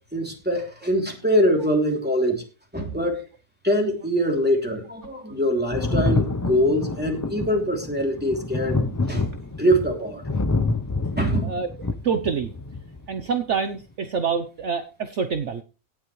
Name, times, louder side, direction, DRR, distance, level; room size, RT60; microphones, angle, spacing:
voice 1, 0.1-2.4 2.7-3.2 3.6-9.3 9.6-10.4 11.2-11.6, equal, 5° right, 1 dB, 3.0 m, -23 dB
Thunder, 5.7-13.1 14.2-14.3, left 2 dB, 25° left, 0.4 m, -27 dB
voice 2, 12.0-12.5 13.1-15.6, right 6 dB, 55° right, 8 dB, 1.1 m, -26 dB
17.5 x 8.5 x 3.2 m, 0.33 s
omnidirectional pair, 1.6 m